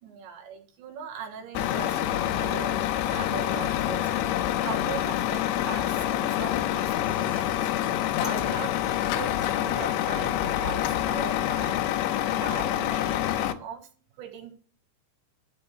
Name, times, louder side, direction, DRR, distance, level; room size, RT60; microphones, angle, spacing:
voice 1, 0.0-4.1 4.6-7.7 8.2-11.8 12.3-13.8 14.2-14.5, right 6 dB, 80° right, 4 dB, 3.8 m, -40 dB
Truck, 1.5-13.5, left 12 dB, 85° left, 3.2 m, -27 dB
13.0 x 4.5 x 7.7 m, 0.39 s
omnidirectional pair, 5.2 m